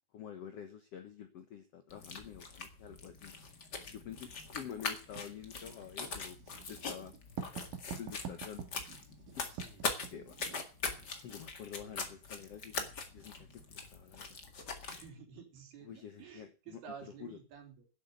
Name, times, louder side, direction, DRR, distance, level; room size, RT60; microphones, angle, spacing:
voice 1, 0.1-3.3 3.9-6.4 6.7-7.1 8.0-8.7 10.1-10.4 11.2-12.9 13.1-14.4 15.8-16.8 17.2-17.4, left 8 dB, 80° left, 9 dB, 1.4 m, -48 dB
sound 1, 1.9-15.1, left 4 dB, 35° left, 1.7 m, -42 dB
Writing, 5.2-11.1, right 7 dB, 65° right, 3.2 m, -47 dB
voice 2, 9.5-9.8 11.7-12.6 14.9-17.9, right 6 dB, 85° right, 3 dB, 5.4 m, -52 dB
11.5 x 8.1 x 8.1 m, 0.34 s
omnidirectional pair, 4.5 m